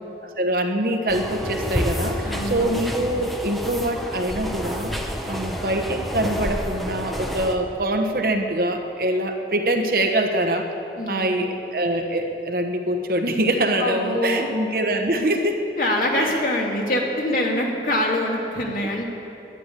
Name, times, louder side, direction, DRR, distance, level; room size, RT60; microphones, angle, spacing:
voice 1, 0.2-4.9 5.3-10.7 11.1-15.6 16.2-16.4 17.3-17.4, right 1 dB, 55° right, 4 dB, 1.1 m, -24 dB
sound 1, 1.1-7.6, equal, ahead, 0.9 m, -29 dB
voice 2, 2.2-2.6 11.0-11.5 13.8-14.5 15.8-19.1, left 1 dB, 50° left, -1 dB, 2.3 m, -24 dB
11.0 x 10.5 x 9.9 m, 2.9 s
head